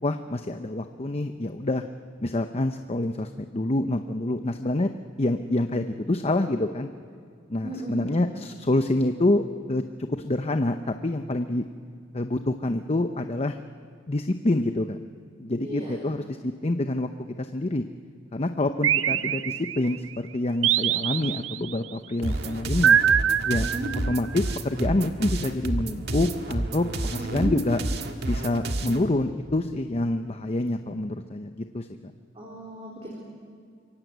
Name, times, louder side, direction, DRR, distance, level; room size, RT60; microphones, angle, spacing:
voice 1, 0.0-1.8 2.2-4.9 5.2-6.9 7.5-9.8 10.1-11.7 12.1-13.6 14.1-15.0 15.4-17.1 17.4-17.8 18.3-23.0 23.5-23.7 24.1-27.8 28.2-32.1, left 2 dB, 30° left, 7 dB, 0.8 m, -27 dB
voice 2, 7.6-8.3 15.6-16.0 19.1-19.2 23.6-23.9 27.2-27.5 32.4-33.1, right 1 dB, 30° right, -2 dB, 4.0 m, -35 dB
sound 1, 18.8-20.0 20.6-21.8 22.8-24.3, right 8 dB, 85° right, 0.6 m, -23 dB
sound 2, 22.2-29.0, right 1 dB, 60° right, 1.7 m, -30 dB
26.0 x 23.5 x 8.1 m, 2.3 s
head